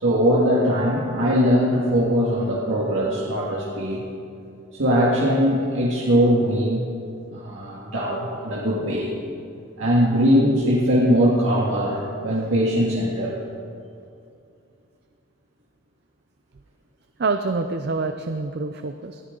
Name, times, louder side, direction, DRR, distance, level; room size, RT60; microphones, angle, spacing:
voice 1, 0.0-4.0 4.8-6.9 7.3-9.1 9.8-13.4, equal, 75° right, -5 dB, 1.9 m, -21 dB
voice 2, 17.2-19.2, right 3 dB, 50° right, 8 dB, 0.5 m, -26 dB
19.5 x 13.0 x 3.8 m, 2.5 s
head